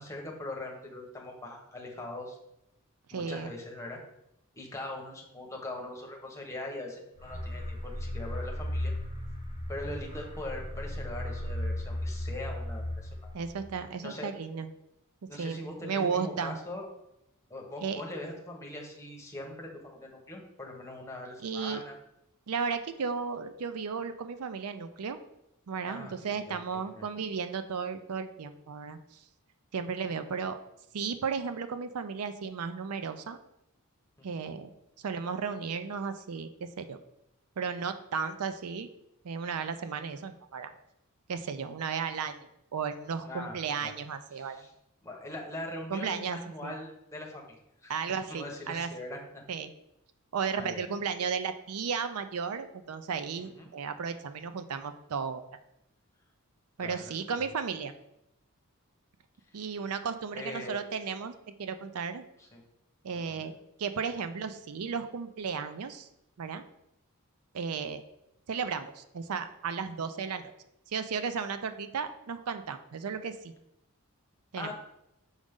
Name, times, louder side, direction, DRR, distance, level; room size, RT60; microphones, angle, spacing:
voice 1, 0.0-2.4 3.1-4.0 4.5-8.9 9.7-13.3 14.0-14.3 15.3-16.8 17.5-21.9 25.9-26.6 26.9-27.1 34.2-34.5 43.2-43.9 44.4-44.7 45.0-47.6 47.8-47.9 48.3-49.4 50.5-50.9 53.4-53.7 56.8-57.5 60.3-60.8 62.4-62.6 63.2-63.5 74.6-74.7, left 1 dB, 15° left, 0 dB, 1.2 m, -41 dB
voice 2, 3.1-3.5 13.3-14.7 15.3-16.6 17.8-18.0 21.4-21.8 22.5-25.2 25.7-29.2 29.7-30.6 30.9-33.4 34.2-34.7 35.0-37.0 37.6-38.9 39.2-40.7 41.3-42.4 42.7-44.6 45.9-46.8 47.9-48.9 49.5-49.7 50.3-55.5 56.8-57.9 59.5-61.3 61.6-62.2 63.0-63.5 63.8-66.1 66.4-66.6 67.5-68.0 68.5-70.5 70.9-73.5 74.5-74.7, right 6 dB, 80° right, 10 dB, 0.5 m, -34 dB
sound 1, 7.2-13.7, left 1 dB, 25° right, 1.3 m, -36 dB
6.3 x 5.2 x 3.7 m, 0.82 s
head